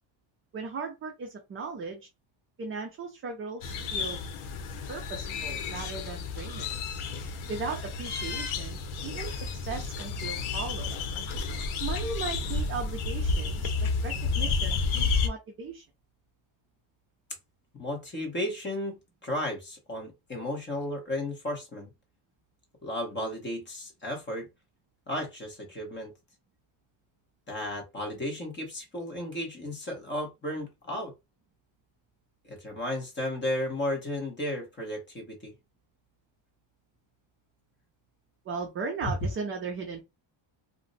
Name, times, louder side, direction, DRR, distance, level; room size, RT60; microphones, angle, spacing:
voice 1, 0.5-2.1 2.6-4.2 4.9-6.7 7.5-10.9 11.8-13.7 14.0-15.8 38.5-40.0, right 4 dB, 30° right, 0.3 m, -37 dB
sound 1, 3.6-15.3, left 4 dB, 75° left, 0.8 m, -31 dB
voice 2, 17.8-21.9 22.8-24.5 25.1-26.1 27.5-31.1 32.4-35.5, left 1 dB, 20° left, 0.9 m, -34 dB
2.5 x 2.1 x 3.8 m
cardioid pair, 175°, 50 cm